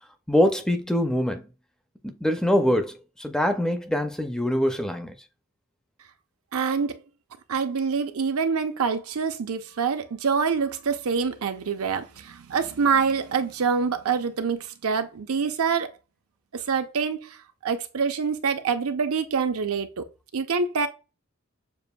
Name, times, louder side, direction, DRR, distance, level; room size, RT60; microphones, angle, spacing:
voice 1, 0.3-1.5 2.0-5.1, equal, 5° left, 0.4 m, -24 dB
voice 2, 6.5-7.0 7.5-15.9 16.5-20.0 20.3-20.9, right 5 dB, 75° right, 0.6 m, -26 dB
6.8 x 2.5 x 2.2 m
head